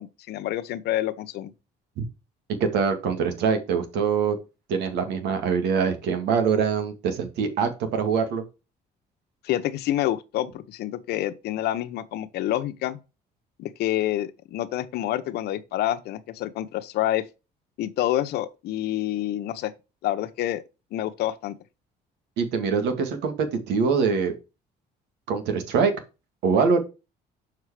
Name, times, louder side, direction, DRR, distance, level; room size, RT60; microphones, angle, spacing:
voice 1, 0.0-1.5 9.4-13.0 13.6-17.2 17.8-19.7 20.0-20.6 20.9-21.6, left 13 dB, 75° left, 0.9 m, -28 dB
voice 2, 2.6-4.4 4.7-8.4 22.4-24.3 25.3-25.9 26.4-26.8, right 6 dB, 85° right, 2.0 m, -24 dB
6.7 x 4.8 x 4.8 m
cardioid pair, 110°, 17 cm